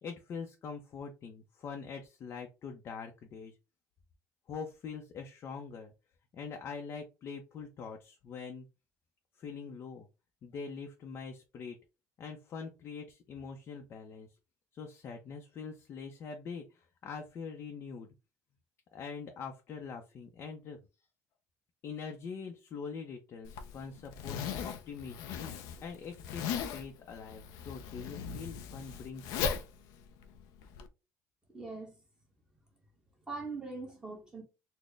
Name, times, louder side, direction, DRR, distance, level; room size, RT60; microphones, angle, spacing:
voice 1, 0.0-3.6 4.5-5.9 6.3-8.7 9.4-10.1 10.4-11.8 12.2-14.3 14.7-18.1 18.9-20.8 21.8-25.2 25.8-29.5, left 5 dB, 40° left, 0.6 m, -43 dB
Zipper (clothing), 23.4-30.9, left 7 dB, 90° left, 0.5 m, -38 dB
voice 2, 31.5-32.0 33.3-34.4, right 3 dB, 10° right, 1.1 m, -41 dB
4.1 x 2.1 x 3.3 m
cardioid pair, 150°, 6 cm